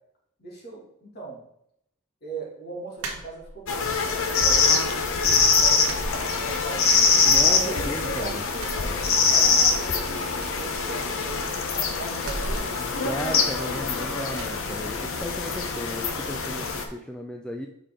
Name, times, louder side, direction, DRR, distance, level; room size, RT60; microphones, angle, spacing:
voice 1, 0.4-1.4 2.2-6.8 7.4-12.6, right 3 dB, 45° left, -3 dB, 2.3 m, -39 dB
sound 1, 3.0-3.9 4.3-5.0 5.2-5.4 5.8-6.9 7.2-8.1 8.5-9.6 9.9-10.0 10.3-11.5 12.2-13.8 14.3-14.6, right 1 dB, 65° right, 1.4 m, -38 dB
sound 2, 3.7-16.8, left 5 dB, 60° left, 0.9 m, -23 dB
voice 2, 7.2-8.4 13.0-17.7, equal, 5° left, 2 dB, 0.4 m, -35 dB
6.6 x 5.0 x 3.7 m, 0.74 s
head